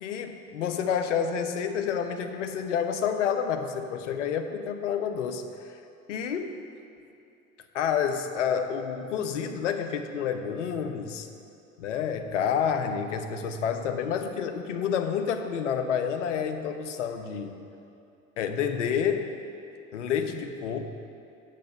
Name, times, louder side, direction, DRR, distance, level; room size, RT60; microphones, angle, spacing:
voice 1, 0.0-5.5 6.1-6.6 7.7-11.3 11.8-17.5 18.4-19.3 19.9-20.9, left 7 dB, 65° left, 7 dB, 0.8 m, -29 dB
8.5 x 7.4 x 5.5 m, 2.6 s
figure-of-eight pair, 75°, 40 cm